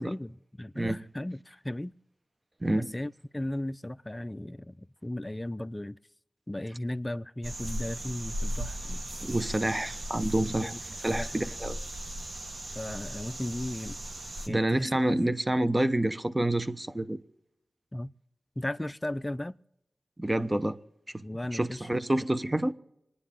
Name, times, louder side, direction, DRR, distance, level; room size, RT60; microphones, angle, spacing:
voice 1, 0.0-2.0 2.8-6.0 6.5-9.0 10.2-10.8 11.1-11.3 12.7-14.0 14.5-14.9 17.9-18.1 18.6-19.6 21.2-21.9, left 1 dB, 20° left, 0.5 m, -36 dB
voice 2, 2.6-2.9 9.2-10.7 11.0-11.8 14.5-17.2 20.2-20.8 21.5-22.7, right 1 dB, 25° right, 1.0 m, -28 dB
sound 1, 7.4-14.5, right 1 dB, 60° right, 1.5 m, -37 dB
28.0 x 10.0 x 3.7 m
wide cardioid pair, 55°, 0 cm